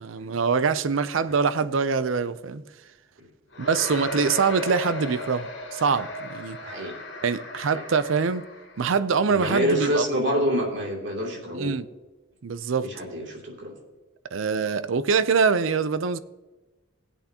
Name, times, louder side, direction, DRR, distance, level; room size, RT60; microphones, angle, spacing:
voice 1, 0.0-2.6 3.6-6.6 7.2-8.4 8.8-10.0 11.5-11.9 12.4-12.9 14.3-16.2, right 5 dB, 80° right, 0.5 m, -24 dB
sound 1, 3.5-8.9, left 2 dB, 60° left, 2.4 m, -36 dB
voice 2, 6.6-6.9 7.7-7.8 9.2-11.7 12.8-13.7, equal, 60° right, 2.8 m, -27 dB
16.5 x 8.3 x 2.9 m
head